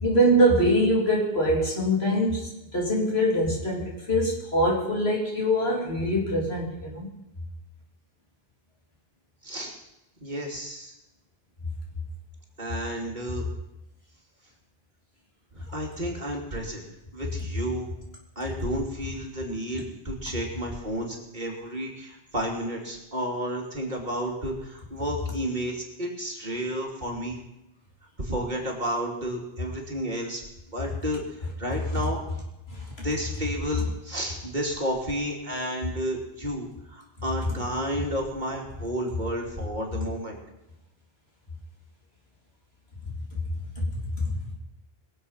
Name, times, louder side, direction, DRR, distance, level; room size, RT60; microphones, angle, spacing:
voice 1, 0.0-7.1 32.7-32.8 43.8-43.9 44.2-44.3, equal, 80° left, -1 dB, 3.8 m, -23 dB
voice 2, 9.4-9.7 10.2-10.9 12.6-13.5 15.5-16.8 17.1-17.9 18.4-27.4 28.2-30.4 30.7-32.2 33.0-40.4, equal, 45° right, -1 dB, 3.0 m, -31 dB
22.5 x 7.8 x 5.7 m, 0.91 s
omnidirectional pair, 1.0 m